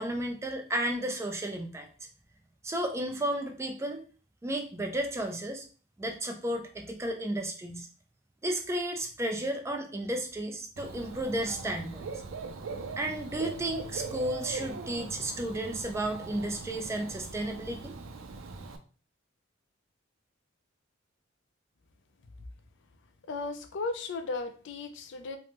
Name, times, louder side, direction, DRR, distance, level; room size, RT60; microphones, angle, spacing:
voice 1, 0.0-1.9 2.6-4.0 4.4-5.7 6.0-7.9 8.4-12.1 13.0-17.9, right 1 dB, 15° right, 0.4 m, -33 dB
Dog / Bird, 10.8-18.8, right 4 dB, 90° right, 0.4 m, -41 dB
voice 2, 23.3-25.4, left 3 dB, 65° left, 0.4 m, -35 dB
3.2 x 2.1 x 2.9 m
head